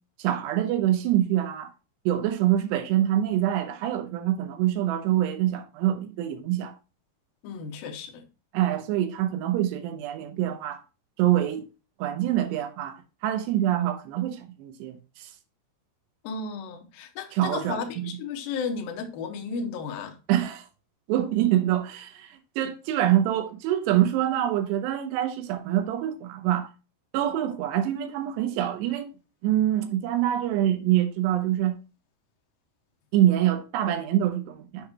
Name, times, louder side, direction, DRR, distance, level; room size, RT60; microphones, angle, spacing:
voice 1, 0.2-1.7 2.1-6.7 8.5-10.8 11.2-11.6 12.0-15.3 17.3-18.1 20.3-20.7 21.1-26.7 27.1-29.1 29.4-31.8 33.1-34.9, right 12 dB, 80° right, 2.5 m, -25 dB
voice 2, 7.4-8.2 16.2-20.2, left 5 dB, 90° left, 2.0 m, -34 dB
7.6 x 6.6 x 2.3 m
omnidirectional pair, 5.7 m